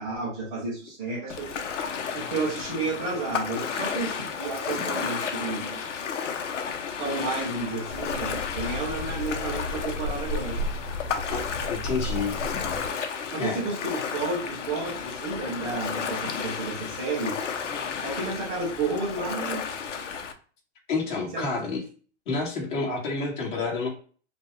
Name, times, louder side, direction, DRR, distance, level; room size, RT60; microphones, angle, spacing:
voice 1, 0.0-5.8 7.0-10.6 13.3-17.4 18.0-19.6 21.3-21.5, right 3 dB, 10° right, -9 dB, 0.4 m, -31 dB
Ocean, 1.3-20.3, left 6 dB, 80° left, 0.9 m, -33 dB
sound 1, 7.9-12.9, left 1 dB, 25° left, 2.2 m, -34 dB
voice 2, 11.7-12.3 13.4-13.6 20.9-21.8 22.3-23.9, left 4 dB, 40° left, -4 dB, 2.1 m, -29 dB
5.0 x 2.4 x 3.3 m, 0.41 s
hypercardioid pair, 165°, 36 cm